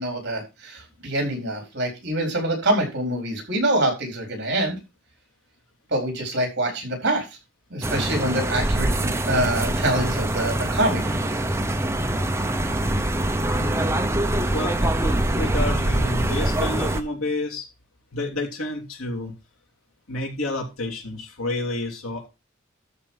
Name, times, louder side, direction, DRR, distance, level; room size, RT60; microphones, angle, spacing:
voice 1, 0.0-4.8 5.9-7.3 7.7-11.1, right 1 dB, 55° right, 2 dB, 4.5 m, -25 dB
sound 1, 7.8-17.0, right 1 dB, 15° right, 0.9 m, -24 dB
voice 2, 13.5-14.0 14.5-17.7 18.1-19.3 20.1-22.3, left 1 dB, 85° left, 1 dB, 3.2 m, -30 dB
13.0 x 4.6 x 5.7 m, 0.26 s
head